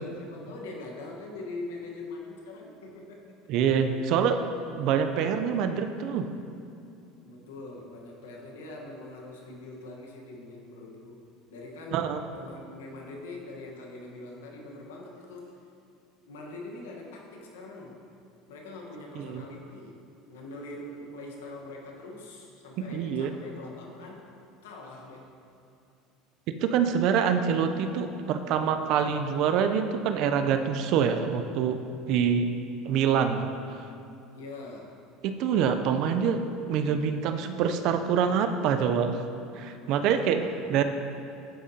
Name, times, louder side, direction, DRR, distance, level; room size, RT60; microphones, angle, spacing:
voice 1, 0.0-3.2 7.1-11.2 11.5-15.6 16.2-18.0 18.5-20.0 20.3-24.3 24.6-25.3 34.3-35.0 39.8-40.7, left 2 dB, 90° left, -1 dB, 1.1 m, -43 dB
voice 2, 3.5-4.4 4.8-6.3 11.9-12.2 19.2-19.4 22.8-23.3 26.6-31.8 32.1-32.5 32.8-33.9 35.2-36.4 36.7-39.2 39.5-40.4 40.7-40.8, right 7 dB, 60° right, 8 dB, 0.5 m, -25 dB
12.0 x 4.9 x 2.8 m, 2.6 s
supercardioid pair, 100°, 0 cm